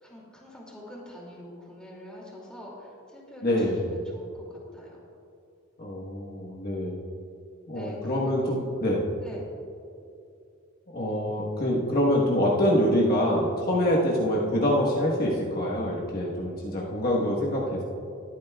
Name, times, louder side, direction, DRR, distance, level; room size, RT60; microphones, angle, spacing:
voice 1, 0.0-4.9 7.7-8.6 9.2-9.4, left 1 dB, 5° left, -4 dB, 2.4 m, -45 dB
voice 2, 3.4-3.9 5.8-7.0 7.7-9.0 10.9-17.8, equal, 45° left, -4 dB, 1.2 m, -25 dB
20.0 x 9.3 x 2.3 m, 2.6 s
head